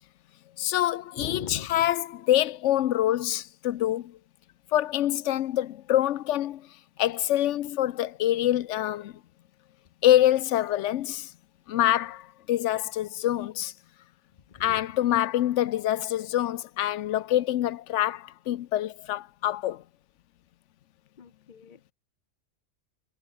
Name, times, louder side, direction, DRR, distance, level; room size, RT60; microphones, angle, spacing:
voice 1, 0.6-4.2 4.7-6.7 7.0-9.1 10.0-11.3 11.7-13.7 14.6-19.8, left 13 dB, 75° left, 0.9 m, -25 dB
voice 2, 1.2-1.8 14.6-14.8 21.2-21.9, left 6 dB, 45° left, 1.0 m, -40 dB
omnidirectional pair, 1.3 m